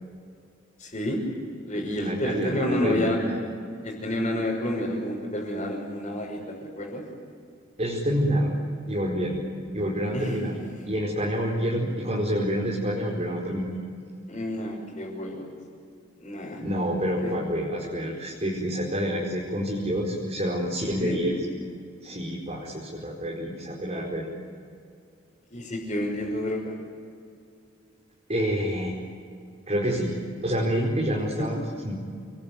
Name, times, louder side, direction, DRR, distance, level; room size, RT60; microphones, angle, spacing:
voice 1, 0.8-1.2 1.7-3.2 3.8-7.0 10.1-10.4 14.3-15.4 16.2-16.6 17.2-17.3 21.0-21.2 25.5-26.7 31.4-31.5, left 1 dB, 35° left, -6 dB, 6.2 m, -29 dB
voice 2, 1.9-3.4 7.8-8.5 8.9-9.4 9.7-10.6 10.8-13.7 16.6-21.3 22.0-24.3 28.3-28.9 29.7-30.1 30.4-31.6 31.8-31.9, equal, 35° right, -3 dB, 4.9 m, -27 dB
28.5 x 22.0 x 9.4 m, 2.3 s
head